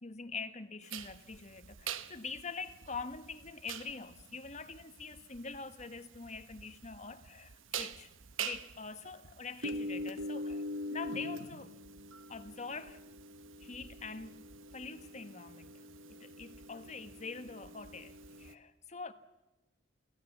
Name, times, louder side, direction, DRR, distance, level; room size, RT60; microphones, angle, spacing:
voice 1, 0.0-8.1 8.4-11.7 12.3-13.0 13.6-14.5 14.7-19.1, left 4 dB, 35° left, 1.2 m, -45 dB
sound 1, 0.9-18.5, right 2 dB, 75° right, 1.0 m, -43 dB
24.0 x 16.5 x 7.4 m
head